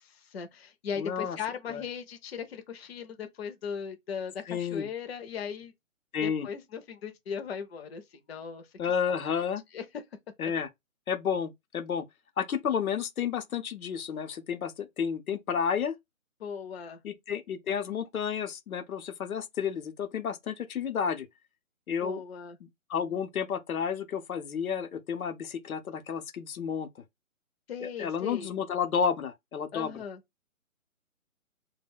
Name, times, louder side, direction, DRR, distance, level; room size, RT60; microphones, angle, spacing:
voice 1, 0.0-5.7 6.2-8.7 9.2-9.4 9.7-9.9 10.4-10.5 16.4-17.0 22.0-22.6 27.7-28.5 29.7-30.2, left 7 dB, 50° left, 0.5 m, -38 dB
voice 2, 1.0-1.4 1.7-1.8 4.5-4.9 6.1-6.5 8.8-9.6 10.4-10.7 11.1-12.1 12.4-15.9 17.0-21.3 21.9-22.2 22.9-26.9 27.8-29.9, left 7 dB, 90° left, 0.7 m, -31 dB
2.2 x 2.1 x 3.4 m
hypercardioid pair, 160°, 41 cm